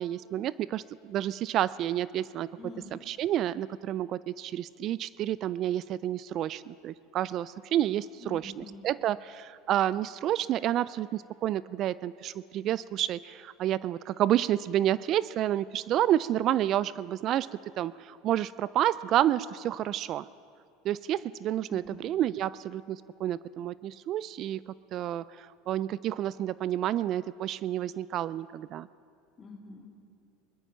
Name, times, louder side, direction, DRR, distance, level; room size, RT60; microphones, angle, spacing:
voice 1, 0.0-2.5 2.9-17.5 17.8-20.3 20.8-24.6 24.9-28.9, right 12 dB, 50° right, 19 dB, 0.3 m, -29 dB
voice 2, 2.6-3.0 8.2-8.8 21.7-22.1 29.4-29.9, left 3 dB, 30° left, 2 dB, 2.4 m, -46 dB
21.5 x 12.0 x 5.7 m, 2.4 s
supercardioid pair, 110°, 0 cm